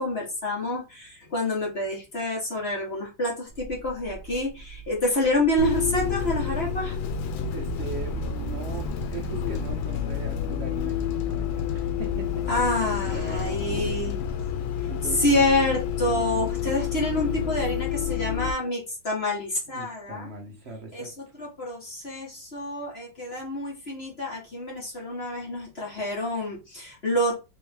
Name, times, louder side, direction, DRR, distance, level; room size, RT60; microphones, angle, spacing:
voice 1, 0.0-7.0 12.5-14.2 15.2-20.3 20.9-27.3, left 1 dB, 35° left, 1.5 m, -27 dB
sound 1, 3.5-12.7, right 2 dB, 20° right, 0.6 m, -42 dB
Bus, 5.6-18.5, left 8 dB, 90° left, 1.4 m, -29 dB
voice 2, 7.5-12.4 13.0-13.9 14.8-15.7 19.7-21.1, right 4 dB, 45° right, 0.8 m, -40 dB
3.4 x 3.2 x 3.4 m
omnidirectional pair, 2.1 m